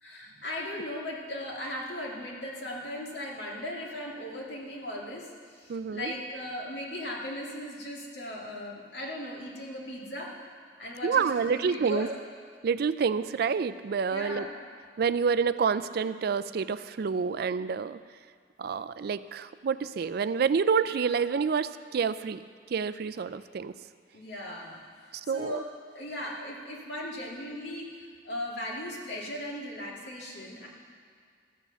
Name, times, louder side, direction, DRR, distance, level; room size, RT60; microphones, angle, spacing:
voice 1, 0.0-10.4 10.8-12.1 14.1-14.5 24.1-24.8 25.2-25.6 25.9-27.9 28.2-30.7, left 1 dB, 70° left, -2 dB, 2.2 m, -37 dB
voice 2, 5.7-6.1 11.0-12.1 12.6-14.5 15.0-18.0 18.6-22.4 22.7-23.7 25.3-25.6, right 6 dB, 60° right, 14 dB, 0.4 m, -28 dB
14.0 x 7.2 x 6.9 m, 2.1 s
head